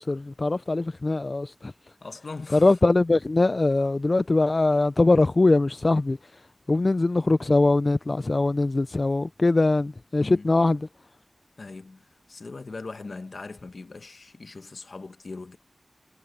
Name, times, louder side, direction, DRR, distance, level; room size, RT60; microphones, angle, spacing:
voice 1, 0.0-1.7 2.5-6.2 6.7-10.9, left 2 dB, 50° left, 0.4 m, -22 dB
voice 2, 2.0-2.8 10.2-10.5 11.6-15.6, left 3 dB, 75° left, 1.3 m, -40 dB
wide cardioid pair, 55°, 0 cm